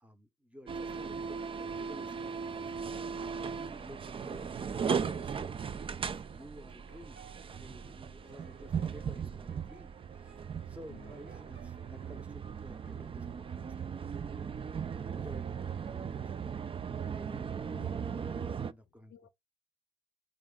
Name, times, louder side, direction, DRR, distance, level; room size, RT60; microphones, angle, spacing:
voice 1, 0.0-3.0 3.3-5.6 6.0-10.4 10.6-14.6 14.8-16.5 17.1-19.1, equal, 5° right, 0.7 m, -53 dB
sound 1, 0.7-18.7, right 6 dB, 30° right, 0.3 m, -38 dB
sound 2, 6.9-12.3, right 8 dB, 70° right, 1.4 m, -58 dB
voice 2, 10.5-11.1 17.7-18.2 19.1-19.3, left 9 dB, 65° left, 0.5 m, -57 dB
3.7 x 2.4 x 3.7 m
cardioid pair, 90°, 20 cm